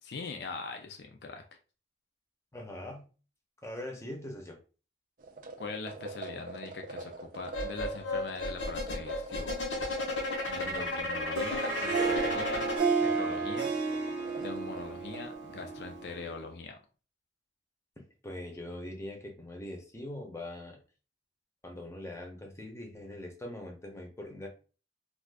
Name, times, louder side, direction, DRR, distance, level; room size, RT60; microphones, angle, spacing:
voice 1, 0.0-1.4 5.6-9.5 10.5-12.7 13.0-13.7 14.4-16.8, left 4 dB, 60° left, 4 dB, 0.4 m, -42 dB
voice 2, 2.5-3.1 3.6-4.6 10.6-10.9 18.0-20.8 21.6-24.5, left 1 dB, 15° left, 2 dB, 0.7 m, -42 dB
sound 1, 5.2-15.3, right 2 dB, 45° right, 0.4 m, -46 dB
sound 2, 7.5-12.8, left 2 dB, 85° left, 0.9 m, -33 dB
Harp, 11.1-16.4, right 4 dB, 85° right, 0.7 m, -32 dB
2.5 x 2.4 x 3.4 m, 0.36 s
head